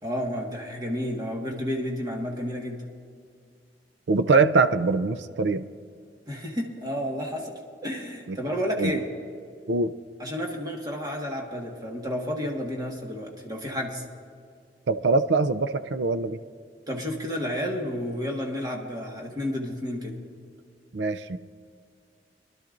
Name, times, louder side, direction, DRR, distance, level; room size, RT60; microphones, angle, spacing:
voice 1, 0.0-2.8 6.3-7.5 7.8-9.1 10.2-14.0 16.9-20.2, equal, 20° right, -1 dB, 1.6 m, -31 dB
voice 2, 4.1-5.6 8.3-8.4 8.8-8.9 9.7-9.9 14.9-16.4 20.9-21.4, right 3 dB, 75° right, 13 dB, 0.5 m, -23 dB
25.0 x 12.0 x 2.5 m, 2.2 s
head